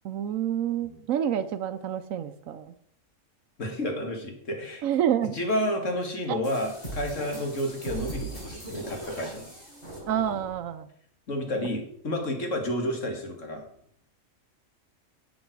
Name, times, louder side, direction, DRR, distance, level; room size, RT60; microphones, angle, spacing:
voice 1, 0.0-2.7 4.8-5.4 6.3-6.4 10.1-10.9, right 9 dB, 90° right, 11 dB, 1.1 m, -28 dB
voice 2, 3.6-4.8 5.3-9.5 11.3-13.6, left 1 dB, 70° left, 3 dB, 2.2 m, -30 dB
sound 1, 6.4-10.6, right 2 dB, 30° left, 5.3 m, -39 dB
10.5 x 7.4 x 4.6 m, 0.65 s
omnidirectional pair, 1.4 m